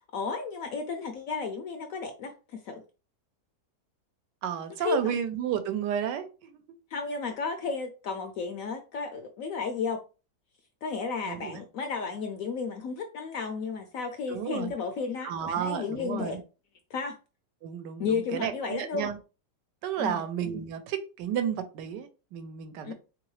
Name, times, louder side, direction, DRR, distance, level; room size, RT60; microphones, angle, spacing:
voice 1, 0.1-2.8 4.8-5.2 6.9-10.0 10.8-16.4 16.9-17.2 18.0-19.1 20.0-20.3 22.8-22.9, left 5 dB, 75° left, 0.8 m, -33 dB
voice 2, 4.4-6.6 11.3-11.6 14.3-14.7 15.2-16.4 17.6-19.2 19.8-22.9, right 9 dB, 85° right, 1.2 m, -32 dB
3.8 x 3.0 x 3.1 m
omnidirectional pair, 1.9 m